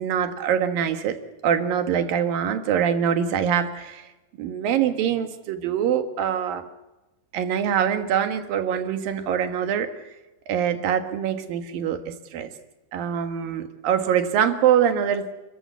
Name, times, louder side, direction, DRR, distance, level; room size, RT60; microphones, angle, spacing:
voice 1, 0.0-4.1 4.4-6.6 7.3-9.9 10.5-12.5 12.9-15.3, right 8 dB, 75° right, 8 dB, 3.3 m, -24 dB
29.0 x 14.5 x 8.2 m, 1.0 s
omnidirectional pair, 4.1 m